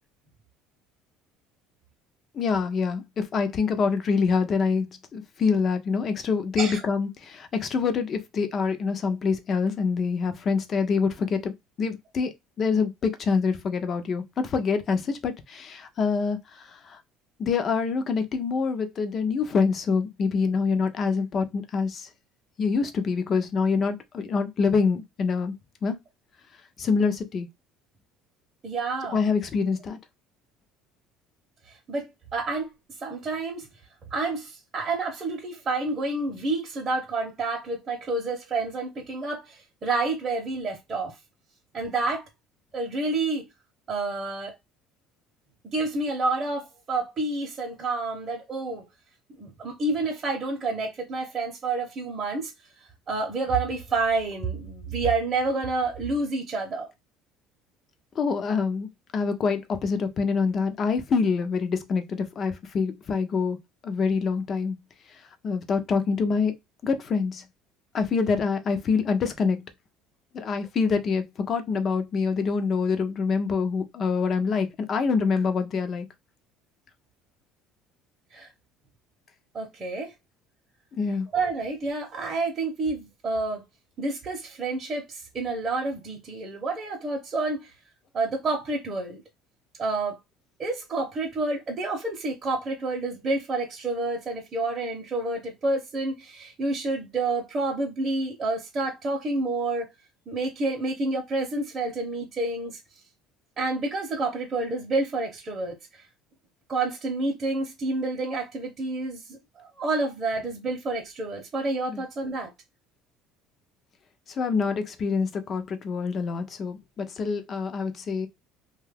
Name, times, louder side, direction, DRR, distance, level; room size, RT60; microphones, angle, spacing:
voice 1, 2.3-11.5 11.8-17.0 17.4-22.1 22.6-25.5 25.8-26.0 26.8-27.5 29.1-30.0 58.2-63.6 63.8-64.8 65.4-66.5 66.8-67.4 67.9-69.6 70.3-76.1 80.9-81.3 111.9-112.0 114.4-118.3, left 5 dB, 30° left, 0.5 m, -26 dB
voice 2, 28.6-29.2 31.9-32.7 33.0-33.7 34.1-41.2 41.7-42.3 42.7-43.4 43.9-44.5 45.7-48.8 49.4-52.5 53.1-56.9 78.3-78.5 79.5-80.1 81.3-83.6 84.0-87.7 88.1-89.2 89.8-90.2 90.6-99.9 100.3-102.8 103.6-105.8 106.7-112.5, right 3 dB, 25° right, 0.7 m, -29 dB
2.7 x 2.3 x 3.3 m
cardioid pair, 155°, 0 cm